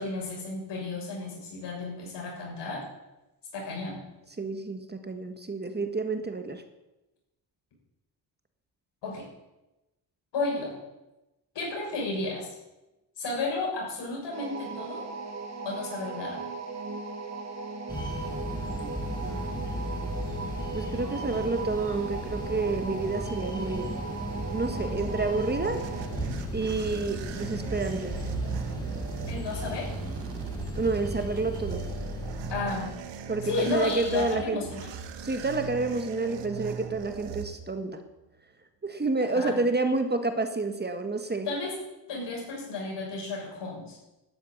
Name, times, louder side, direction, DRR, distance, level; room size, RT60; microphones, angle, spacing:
voice 1, 0.0-2.8 3.5-4.0 9.0-9.3 10.3-10.7 11.6-12.5 13.2-15.0 15.6-16.4 29.3-29.9 32.5-32.9 33.4-34.9 39.2-39.6 41.5-41.8 42.1-44.0, left 3 dB, 80° left, -2 dB, 7.1 m, -33 dB
voice 2, 4.4-6.6 20.7-24.0 24.5-25.8 26.5-28.1 30.7-31.8 33.3-34.6 35.2-38.0 38.8-41.5, right 3 dB, 25° right, 7 dB, 1.6 m, -29 dB
sound 1, 14.3-26.2, right 4 dB, 40° right, 2.2 m, -38 dB
sound 2, 17.9-32.9, equal, 10° left, 6.0 m, -35 dB
sound 3, 25.2-38.0, right 6 dB, 90° right, 1.4 m, -40 dB
12.5 x 10.0 x 8.8 m, 1.0 s
cardioid pair, 100°, 42 cm